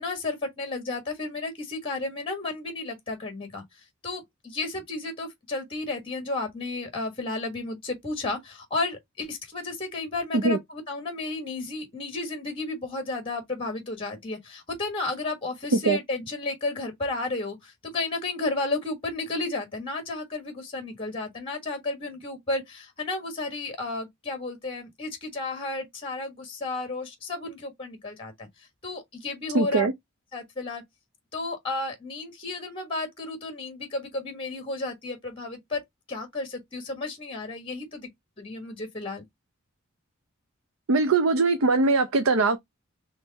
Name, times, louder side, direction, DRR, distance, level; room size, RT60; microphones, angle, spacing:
voice 1, 0.0-3.6 4.0-28.5 28.8-29.9 30.3-30.8 31.3-35.8 36.1-38.1 38.4-39.2, left 3 dB, 25° left, 1.4 m, -33 dB
voice 2, 29.5-29.9 40.9-42.6, right 3 dB, 85° right, 0.6 m, -21 dB
4.5 x 3.3 x 2.8 m
head